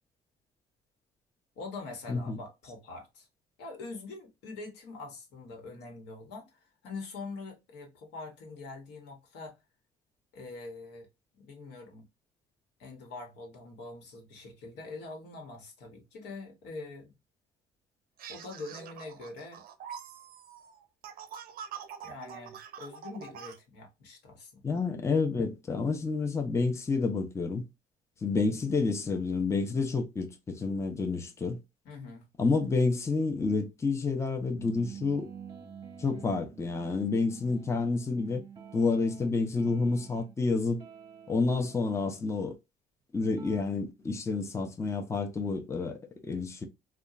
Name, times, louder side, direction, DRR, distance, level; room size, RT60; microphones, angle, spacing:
voice 1, 1.6-3.3 3.6-9.6 10.3-11.1 11.3-12.1 12.8-17.1 18.3-19.6 22.0-24.8 31.8-32.3, left 3 dB, 85° left, 1.1 m, -44 dB
voice 2, 2.1-2.4 24.6-27.7 28.2-31.6 32.4-35.3 36.0-38.4 38.7-40.8 41.3-42.5 43.1-46.7, left 4 dB, 15° left, 0.5 m, -29 dB
sound 1, 18.2-23.6, right 8 dB, 60° right, 0.5 m, -45 dB
sound 2, 34.6-40.4 40.8-41.9 43.1-43.6, right 7 dB, 25° right, 0.7 m, -48 dB
2.8 x 2.2 x 2.4 m
cardioid pair, 110°, 17 cm